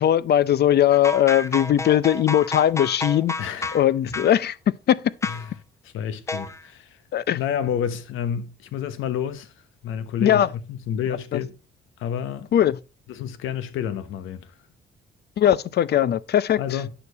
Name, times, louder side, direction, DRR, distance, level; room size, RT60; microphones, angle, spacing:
voice 1, 0.0-3.3 3.7-5.1 7.1-7.4 10.2-10.5 11.3-11.4 12.5-12.8 15.4-16.8, left 11 dB, 55° left, 0.6 m, -20 dB
sound 1, 0.9-3.9 4.1-4.4 5.2-5.5 6.3-6.6, left 2 dB, 15° left, 0.9 m, -31 dB
voice 2, 3.4-4.1 5.3-5.5 5.8-7.0 7.3-9.5 9.8-11.5 12.0-12.5 13.1-14.5 16.6-16.9, left 9 dB, 90° left, 1.0 m, -30 dB
8.9 x 6.6 x 4.0 m
cardioid pair, 90°, 20 cm